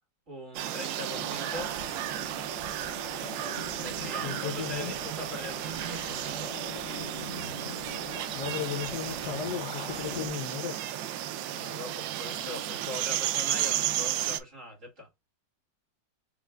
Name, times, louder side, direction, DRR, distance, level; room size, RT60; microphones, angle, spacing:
voice 1, 0.3-1.7 3.8-6.5 11.5-15.1, left 1 dB, 45° right, 2.6 m, -41 dB
sound 1, 0.5-14.4, right 12 dB, 85° right, 1.3 m, -33 dB
sound 2, 1.1-10.3, left 3 dB, 40° left, 2.2 m, -43 dB
voice 2, 4.2-4.9 8.3-10.8, left 9 dB, 70° left, 1.4 m, -35 dB
5.3 x 3.2 x 2.3 m
omnidirectional pair, 2.0 m